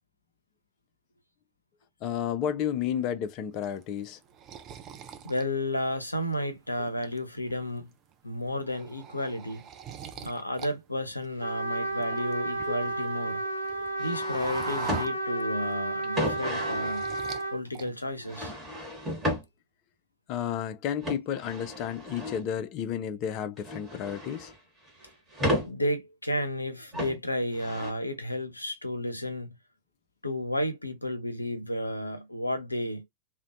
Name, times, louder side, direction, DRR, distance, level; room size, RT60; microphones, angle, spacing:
voice 1, 2.0-4.2 12.7-12.8 13.8-13.9 20.3-24.5, left 9 dB, 40° left, 0.4 m, -32 dB
sound 1, 3.6-6.3 6.8-7.5 7.9-8.1 8.4-10.7 11.0-13.1 13.4-15.7 16.1-17.5 17.7-18.3, right 8 dB, 30° right, 0.4 m, -43 dB
voice 2, 5.2-7.9 8.2-9.6 10.2-13.4 14.0-17.2 17.5-18.5 25.6-29.6 30.2-33.0, left 1 dB, 85° left, 0.6 m, -32 dB
Trumpet, 11.4-17.6, right 1 dB, 85° right, 0.8 m, -32 dB
sound 2, 14.0-15.0 16.0-16.9 18.2-19.4 21.0-22.4 23.3-24.6 24.9-25.7 26.9-27.2 27.5-27.9, equal, 15° right, 1.2 m, -33 dB
2.5 x 2.1 x 2.4 m
figure-of-eight pair, 100°, 0 cm